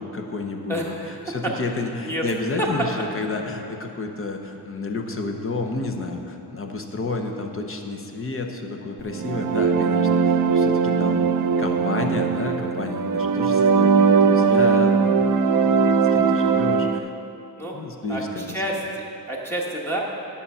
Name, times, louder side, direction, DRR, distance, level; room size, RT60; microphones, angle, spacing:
voice 1, 0.0-1.0 1.3-11.2 11.6-17.1 17.7-18.6, left 3 dB, 35° left, 4 dB, 0.8 m, -30 dB
voice 2, 0.7-1.5 2.0-2.3 2.6-2.7 17.6-17.7 18.1-20.0, right 1 dB, 5° left, -5 dB, 1.1 m, -29 dB
sound 1, 9.1-17.0, right 5 dB, 55° right, 0.5 m, -19 dB
11.5 x 7.0 x 5.5 m, 2.9 s
wide cardioid pair, 165°, 38 cm